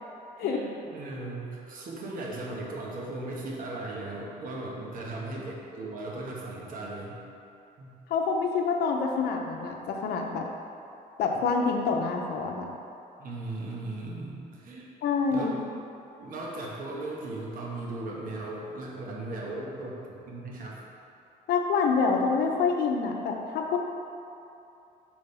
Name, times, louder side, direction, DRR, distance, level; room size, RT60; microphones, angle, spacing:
voice 1, 0.4-7.2 7.8-8.0 13.2-14.9 15.3-15.6 16.2-20.8, right 2 dB, 55° right, -3 dB, 1.2 m, -37 dB
voice 2, 8.1-10.4 11.2-12.7 15.0-15.6 21.5-23.8, left 5 dB, 70° left, 1 dB, 0.7 m, -26 dB
5.0 x 4.0 x 5.5 m, 2.7 s
cardioid pair, 110°, 17 cm